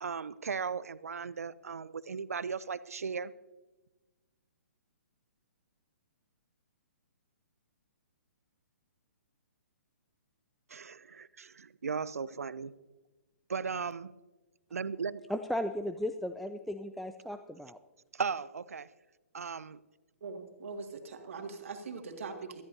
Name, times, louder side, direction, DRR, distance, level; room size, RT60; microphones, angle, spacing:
voice 1, 0.0-3.3 10.7-12.7 13.5-14.1 14.7-15.2 18.1-18.9 19.3-19.8, right 5 dB, 80° right, 18 dB, 0.5 m, -37 dB
voice 2, 15.3-17.8, left 1 dB, ahead, 8 dB, 0.3 m, -35 dB
voice 3, 20.2-22.6, right 4 dB, 60° right, 4 dB, 2.0 m, -42 dB
18.0 x 13.5 x 2.7 m, 1.2 s
figure-of-eight pair, 130°, 8 cm